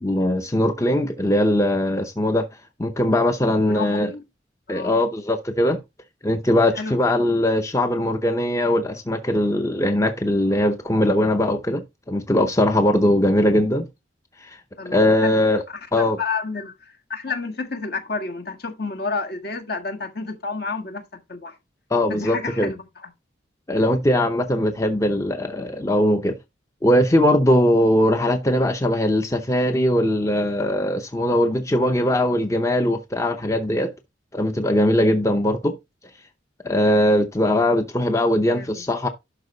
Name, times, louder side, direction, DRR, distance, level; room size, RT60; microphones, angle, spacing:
voice 1, 0.0-2.5 2.8-4.1 4.7-5.8 6.2-13.9 14.4-14.6 14.9-15.6 15.9-16.2 21.9-22.7 23.7-26.3 26.8-33.9 34.3-35.8 36.6-39.1, left 1 dB, 15° left, 0.7 m, -20 dB
voice 2, 3.7-4.2 4.7-4.9 6.7-7.0 14.8-21.6 22.1-23.1 38.5-38.8, left 4 dB, 55° left, 1.6 m, -30 dB
11.5 x 4.5 x 4.0 m
head